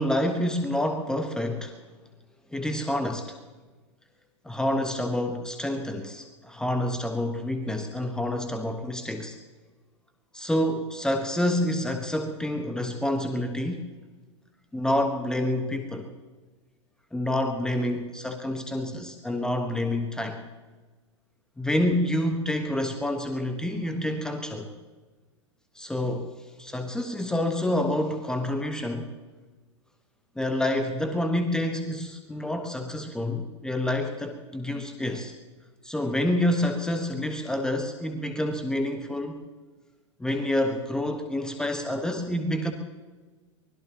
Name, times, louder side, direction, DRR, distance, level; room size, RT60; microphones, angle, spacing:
voice 1, 0.0-1.8 2.5-3.4 4.4-9.3 10.3-13.9 14.7-16.1 17.1-20.4 21.6-24.7 25.7-26.3 26.6-29.1 30.4-35.3 35.8-39.4 40.2-42.7, left 1 dB, 5° left, 6 dB, 1.3 m, -28 dB
24.0 x 20.0 x 3.0 m, 1.3 s
figure-of-eight pair, 100°, 16 cm